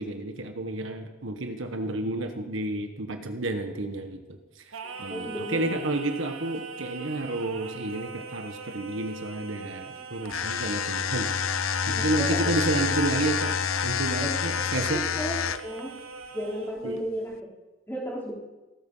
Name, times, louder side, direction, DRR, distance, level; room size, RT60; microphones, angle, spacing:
voice 1, 0.0-4.6 5.0-11.3 11.9-13.5 13.8-15.0 16.8-17.0, right 2 dB, 70° right, 6 dB, 1.5 m, -31 dB
Singing, 4.7-16.8, right 5 dB, 90° right, 1.7 m, -41 dB
voice 2, 4.8-5.6 11.9-12.6 14.2-14.4 14.9-15.4 15.6-16.0 16.3-17.5 17.9-18.3, equal, 10° left, -4 dB, 4.6 m, -34 dB
sound 1, 10.3-15.8, left 7 dB, 85° left, 0.7 m, -28 dB
18.0 x 14.0 x 5.7 m, 1.1 s
head